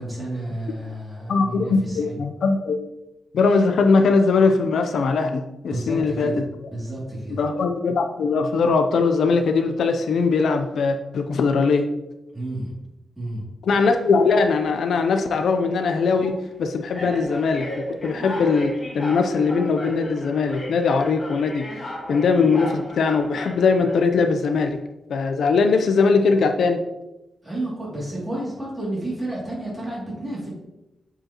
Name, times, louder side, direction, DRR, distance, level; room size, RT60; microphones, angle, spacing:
voice 1, 0.0-2.2 5.7-6.3 6.7-7.4 12.3-12.7 13.2-13.4 27.4-30.5, right 1 dB, 15° right, -5 dB, 2.4 m, -31 dB
voice 2, 1.3-2.8 3.3-6.5 7.4-11.9 13.6-16.3 16.6-17.7 18.0-21.7 22.1-24.8 25.1-26.8, left 4 dB, 70° left, 6 dB, 0.5 m, -20 dB
sound 1, 13.9-14.5 15.2-15.4 16.2-16.4 16.9-24.2, equal, 30° left, 1.7 m, -35 dB
7.8 x 4.8 x 2.9 m, 0.95 s
wide cardioid pair, 145°, 0 cm